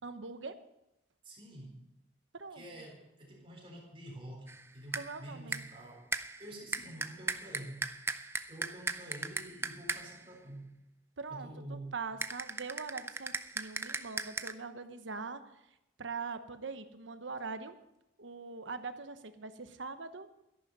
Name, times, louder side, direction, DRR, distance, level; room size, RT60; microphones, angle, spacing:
voice 1, 0.0-0.6 2.3-2.8 5.0-5.6 11.2-15.4 16.0-17.8 18.2-20.3, right 4 dB, 80° right, 10 dB, 1.0 m, -42 dB
voice 2, 1.2-1.8 2.5-6.1 6.4-7.9 8.5-10.7 11.3-11.9, right 1 dB, 30° right, -1 dB, 4.0 m, -48 dB
sound 1, 4.5-5.2 5.5-5.8 6.1-10.2 12.2-14.5, right 3 dB, 15° right, 0.4 m, -38 dB
13.0 x 11.0 x 5.5 m, 0.88 s
head